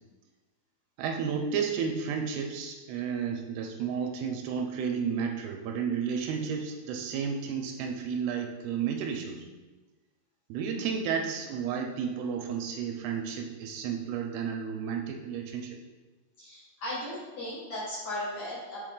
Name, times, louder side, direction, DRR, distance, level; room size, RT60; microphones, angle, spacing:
voice 1, 1.0-9.4 10.5-15.8, right 6 dB, 85° right, 3 dB, 2.5 m, -32 dB
voice 2, 16.4-18.8, left 1 dB, 50° left, -9 dB, 2.7 m, -36 dB
6.3 x 5.1 x 3.7 m, 1.2 s
omnidirectional pair, 4.6 m